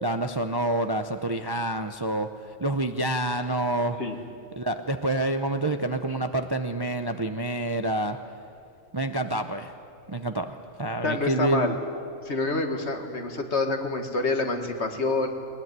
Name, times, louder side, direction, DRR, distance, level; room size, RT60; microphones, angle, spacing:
voice 1, 0.0-2.3 2.6-4.0 4.6-8.2 8.9-9.7 10.1-11.8, right 1 dB, 25° right, 7 dB, 0.6 m, -27 dB
voice 2, 11.0-11.8 12.2-15.3, left 3 dB, 55° left, 4 dB, 2.1 m, -27 dB
21.0 x 20.5 x 9.5 m, 2.4 s
omnidirectional pair, 1.4 m